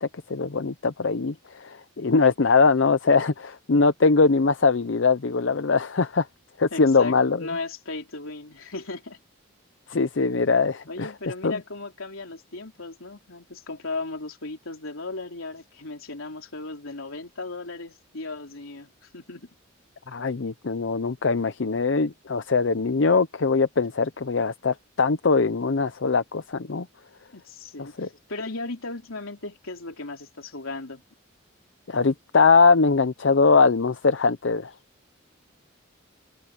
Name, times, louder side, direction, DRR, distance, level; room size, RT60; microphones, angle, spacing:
voice 1, 0.0-6.3 6.6-7.4 9.9-11.1 11.4-11.6 20.1-26.9 27.8-28.1 31.9-34.7, left 4 dB, 65° left, 0.7 m, -22 dB
voice 2, 6.7-9.2 10.9-19.5 27.3-31.0, left 3 dB, 85° left, 3.4 m, -36 dB
open air
head